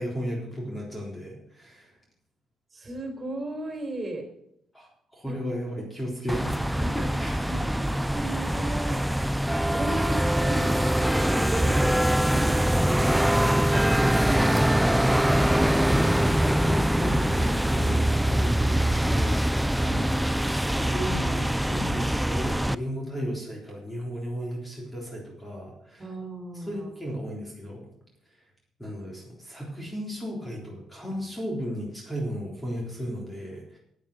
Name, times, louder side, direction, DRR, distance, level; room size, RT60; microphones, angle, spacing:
voice 1, 0.0-1.9 4.7-7.5 15.0-26.0 26.5-27.8 28.8-33.8, equal, 10° left, -2 dB, 3.7 m, -35 dB
voice 2, 2.7-4.3 5.2-5.4 7.4-9.1 9.7-14.7 26.0-26.9, right 2 dB, 30° right, 3 dB, 3.9 m, -36 dB
sound 1, 6.3-22.8, right 1 dB, 5° right, 0.4 m, -23 dB
9.5 x 8.8 x 6.4 m, 0.74 s
cardioid pair, 90°, 0 cm